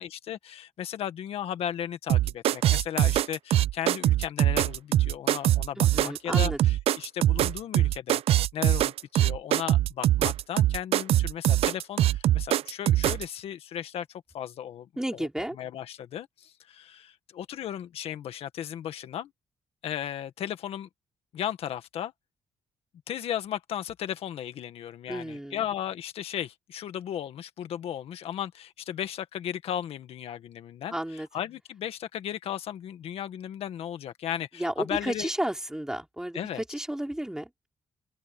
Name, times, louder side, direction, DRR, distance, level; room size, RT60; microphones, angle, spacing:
voice 1, 0.0-8.2 8.5-15.3 15.5-19.3 19.8-20.9 21.3-22.1 23.1-35.3 36.3-36.6, left 10 dB, 85° left, 1.7 m, -35 dB
sound 1, 2.1-13.2, right 13 dB, 85° right, 0.5 m, -23 dB
voice 2, 5.8-6.6 15.0-15.6 25.1-25.6 30.9-31.3 34.5-37.7, right 1 dB, 5° right, 3.7 m, -32 dB
open air
cardioid pair, 120°, 10 cm